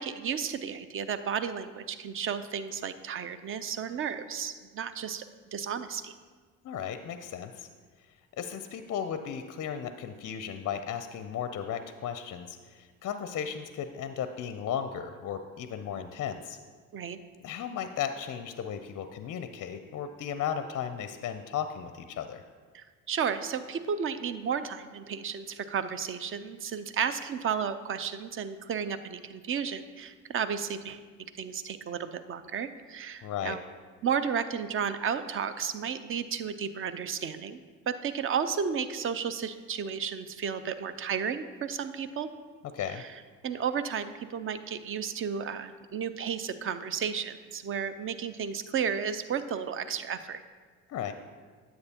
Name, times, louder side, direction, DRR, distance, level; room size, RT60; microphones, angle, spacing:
voice 1, 0.0-5.2 5.5-6.1 16.9-17.2 22.7-33.6 34.0-42.3 42.9-43.1 43.4-50.4, right 7 dB, 35° right, 12 dB, 0.5 m, -33 dB
voice 2, 6.6-7.7 8.4-16.6 17.4-22.4 33.2-33.6 42.7-43.0 50.9-51.1, left 8 dB, 40° left, 9 dB, 0.5 m, -35 dB
9.6 x 7.8 x 2.8 m, 1.5 s
hypercardioid pair, 60°, 39 cm